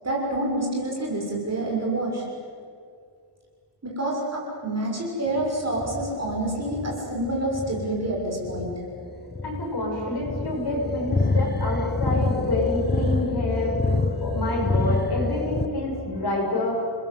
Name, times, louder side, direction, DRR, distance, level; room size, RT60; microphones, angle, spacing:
voice 1, 0.0-2.2 3.8-8.7, right 1 dB, 30° right, -2 dB, 6.5 m, -27 dB
sound 1, 5.3-15.7, left 3 dB, 20° left, 1.2 m, -27 dB
voice 2, 9.4-16.8, left 1 dB, 50° left, -2 dB, 7.0 m, -28 dB
29.5 x 20.5 x 8.0 m, 2.2 s
wide cardioid pair, 175°, 49 cm